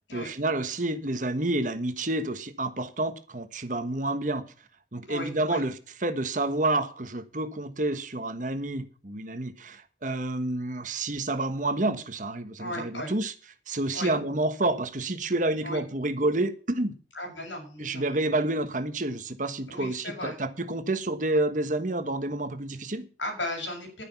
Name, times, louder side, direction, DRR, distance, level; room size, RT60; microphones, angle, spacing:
voice 1, 0.1-4.4 4.9-5.7 6.0-13.3 13.7-16.9 17.8-23.1, right 2 dB, 45° right, 1.4 m, -29 dB
voice 2, 5.1-5.6 12.6-13.1 13.9-14.1 15.6-15.8 17.1-18.0 19.7-20.4 23.2-24.0, left 1 dB, 85° left, 7.1 m, -35 dB
11.5 x 10.0 x 5.8 m
head